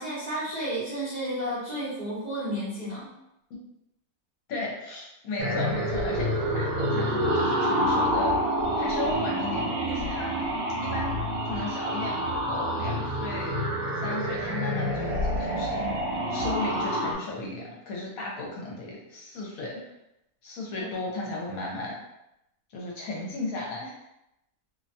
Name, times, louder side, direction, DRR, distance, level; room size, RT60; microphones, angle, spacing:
voice 1, 0.0-3.1 20.7-20.9, right 1 dB, 40° right, -11 dB, 0.6 m, -32 dB
voice 2, 4.5-8.4 8.8-10.3 10.8-11.1 11.4-13.5 14.0-15.9 16.3-19.8 20.4-22.0 22.7-23.9, left 2 dB, 70° left, -2 dB, 1.0 m, -35 dB
sound 1, 5.4-17.1, equal, 70° right, 0.9 m, -27 dB
2.7 x 2.1 x 2.6 m, 0.84 s
omnidirectional pair, 1.6 m